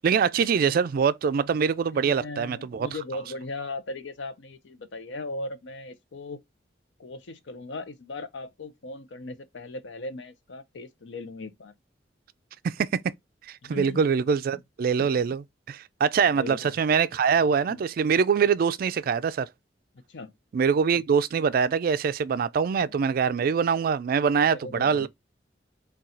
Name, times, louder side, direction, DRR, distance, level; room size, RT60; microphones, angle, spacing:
voice 1, 0.0-2.9 12.6-13.0 13.5-19.5 20.5-25.1, right 6 dB, 50° right, 0.3 m, -24 dB
voice 2, 1.9-6.4 7.0-11.7 13.6-14.1 14.5-14.6 15.0-15.2 16.3-16.7 17.7-17.8 20.1-20.3 22.8-23.0 24.5-25.1, left 2 dB, 85° left, 0.6 m, -38 dB
4.2 x 2.3 x 3.8 m
head